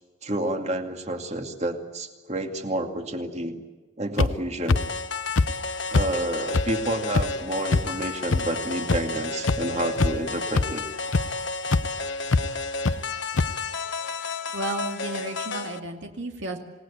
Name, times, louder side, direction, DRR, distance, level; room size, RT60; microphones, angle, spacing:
voice 1, 0.2-3.6 4.0-4.8 5.9-10.9 11.7-11.8, right 1 dB, 35° right, 4 dB, 2.4 m, -29 dB
sound 1, 4.2-4.3 4.7-4.8 5.4-5.5 5.9-6.1 6.5-6.6 7.1-7.3 7.7-7.8 8.3-8.4 8.9-9.0 9.5-9.6 10.0-10.2 10.5-10.7 11.1-11.2 11.7-11.8 12.3-12.4 12.9-13.0 13.4-13.5, left 3 dB, 80° left, 0.8 m, -20 dB
sound 2, 4.7-15.8, left 3 dB, 60° left, 1.4 m, -32 dB
voice 2, 14.5-16.6, right 2 dB, 65° right, 3 dB, 2.4 m, -33 dB
28.0 x 18.5 x 8.6 m, 1.3 s
head